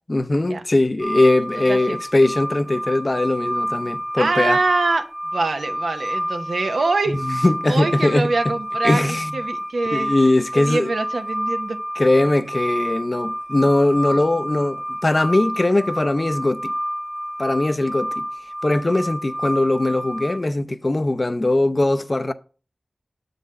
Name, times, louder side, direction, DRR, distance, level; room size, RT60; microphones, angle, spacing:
voice 1, 0.1-4.6 7.1-8.5 8.8-9.4 9.9-10.9 12.0-16.7 17.4-18.3 18.6-22.3, left 2 dB, 45° left, 0.5 m, -20 dB
sound 1, 1.0-20.4, equal, 50° right, 1.5 m, -29 dB
voice 2, 1.5-2.0 4.2-7.2 7.7-10.1 10.5-11.8, right 3 dB, 90° right, 0.7 m, -24 dB
7.5 x 4.0 x 5.4 m
cardioid pair, 45°, 0 cm